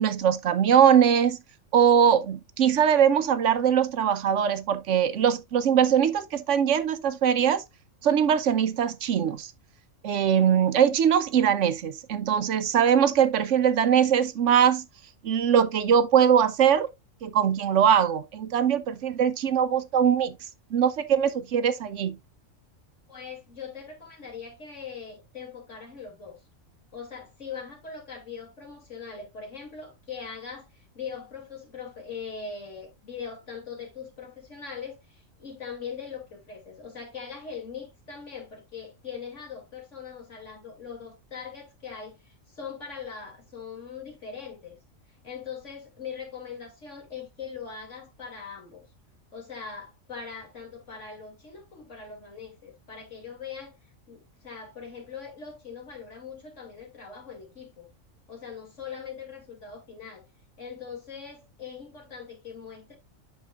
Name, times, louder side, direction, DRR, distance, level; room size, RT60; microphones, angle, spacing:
voice 1, 0.0-1.4 1.7-7.6 8.0-9.5 10.0-14.8 15.2-16.9 17.2-20.3 20.7-22.2, right 8 dB, 70° right, 1.0 m, -22 dB
voice 2, 23.1-26.4 26.9-44.8 45.1-48.9 49.3-57.9 58.3-60.2 60.6-62.9, left 6 dB, 65° left, 2.9 m, -41 dB
8.4 x 6.4 x 2.4 m
omnidirectional pair, 1.4 m